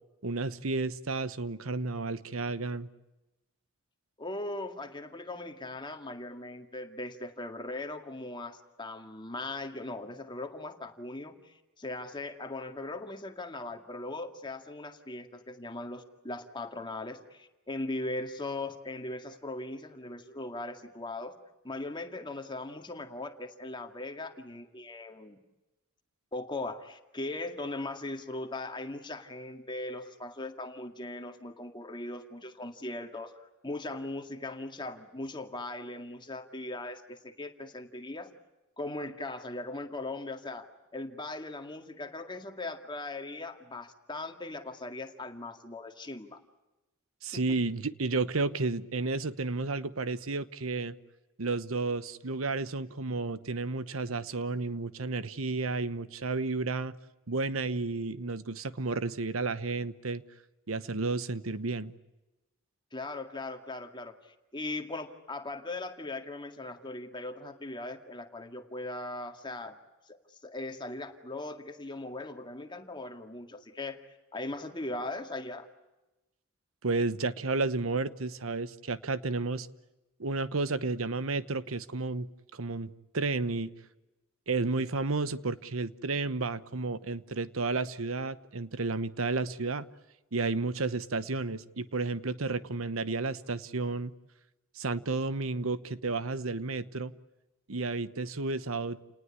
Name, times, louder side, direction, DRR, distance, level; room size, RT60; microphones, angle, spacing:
voice 1, 0.2-2.9 47.2-50.9 51.4-57.0 57.3-60.2 60.7-61.9 76.8-79.7 80.2-82.3 82.5-83.7 84.5-89.9 90.3-94.1 94.8-97.1 97.7-99.0, right 3 dB, 80° right, 1.0 m, -32 dB
voice 2, 4.2-21.4 21.6-25.4 26.3-38.3 38.8-46.4 47.3-47.6 62.9-69.7 70.1-74.0 74.3-75.7, left 2 dB, 20° left, 2.1 m, -39 dB
29.5 x 19.5 x 9.9 m
head